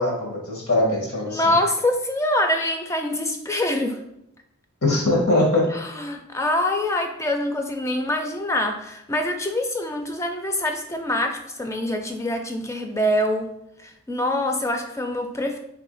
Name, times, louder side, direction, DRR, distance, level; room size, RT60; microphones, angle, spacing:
voice 1, 0.0-1.5 4.8-5.6, left 2 dB, 90° left, -3 dB, 1.6 m, -21 dB
voice 2, 1.3-4.0 5.7-13.5 13.8-15.6, left 1 dB, 15° left, 5 dB, 0.4 m, -25 dB
3.5 x 3.1 x 4.1 m, 0.82 s
head